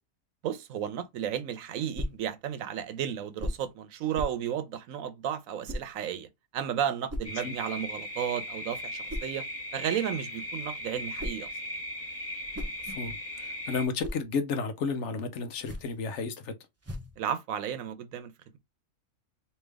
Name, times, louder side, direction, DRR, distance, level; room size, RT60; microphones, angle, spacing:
voice 1, 0.4-6.3 6.5-9.4 9.7-11.5 17.2-18.6, right 9 dB, 90° right, 1.1 m, -33 dB
sound 1, 1.9-2.3 3.4-3.7 4.1-4.5 5.6-5.9 7.1-7.4 9.1-9.4 10.9-11.5 12.3-13.2 13.7-14.3 15.5-16.0 16.8-17.2, equal, 25° right, 0.3 m, -37 dB
sound 2, 7.2-13.9, left 1 dB, 10° left, 1.3 m, -38 dB
voice 2, 12.9-16.5, left 4 dB, 65° left, 1.0 m, -32 dB
3.3 x 2.8 x 3.4 m
omnidirectional pair, 1.4 m